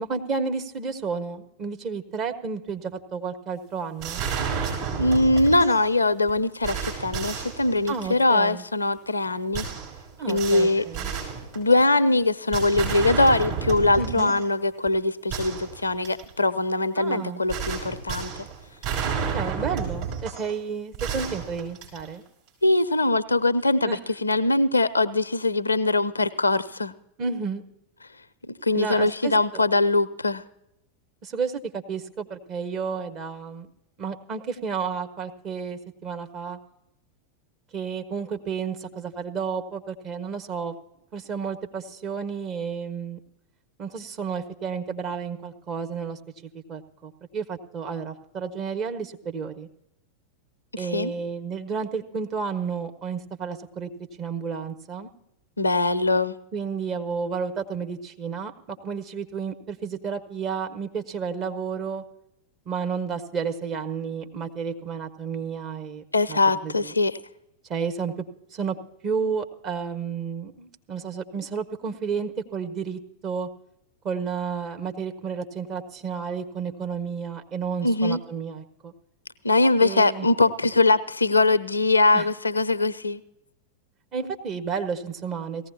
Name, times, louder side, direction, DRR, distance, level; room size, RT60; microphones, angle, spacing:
voice 1, 0.0-4.3 7.9-8.6 10.2-11.1 14.0-14.3 17.0-17.4 19.3-22.2 23.8-24.0 27.2-27.6 28.7-29.6 31.2-33.7 34.0-36.6 37.7-40.7 41.1-43.2 43.8-46.2 46.7-49.7 50.8-53.9 54.2-55.1 56.5-62.0 62.7-66.9 67.7-68.1 68.5-68.8 69.0-73.5 74.0-78.9 79.8-80.3 82.1-82.3 84.1-85.7, right 5 dB, 35° right, 5 dB, 1.2 m, -31 dB
sound 1, 4.0-5.9 6.3-6.4 6.6-8.3 9.5-12.0 12.5-14.5 14.9-15.0 15.3-16.3 17.5-20.6 20.9-22.3, right 6 dB, 50° right, 5.4 m, -31 dB
voice 2, 5.0-9.7 10.3-10.9 11.5-18.5 22.6-26.9 28.5-30.4 50.7-51.1 55.6-56.3 66.1-67.2 77.8-78.2 79.4-83.2, left 2 dB, 80° left, 15 dB, 0.5 m, -22 dB
18.0 x 15.5 x 2.8 m, 0.82 s
figure-of-eight pair, 90°, 0 cm